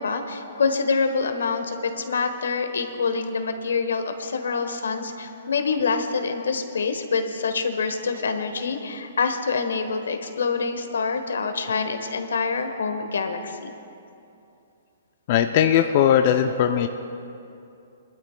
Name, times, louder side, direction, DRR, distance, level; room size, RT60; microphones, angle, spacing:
voice 1, 0.0-13.7, left 4 dB, 85° left, 7 dB, 1.1 m, -26 dB
voice 2, 15.3-16.9, left 9 dB, 45° left, 6 dB, 0.4 m, -19 dB
23.0 x 12.0 x 2.2 m, 2.7 s
hypercardioid pair, 145°, 0 cm